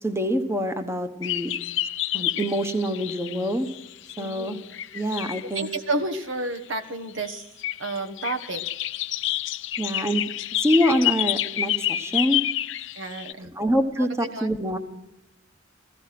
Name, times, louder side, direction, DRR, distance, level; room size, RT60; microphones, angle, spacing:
voice 1, 0.0-1.5 2.1-3.7 4.2-4.6 4.9-5.7 9.8-10.3 10.6-12.4 13.4-14.8, equal, 15° right, 9 dB, 1.0 m, -25 dB
sound 1, 1.2-5.7 7.1-7.3 7.6-13.3, left 13 dB, 70° left, 0.7 m, -29 dB
voice 2, 4.2-4.6 5.4-7.5 7.8-8.6 12.9-13.5 14.0-14.5, right 2 dB, 75° right, 9 dB, 1.4 m, -31 dB
15.5 x 15.5 x 5.9 m, 0.88 s
head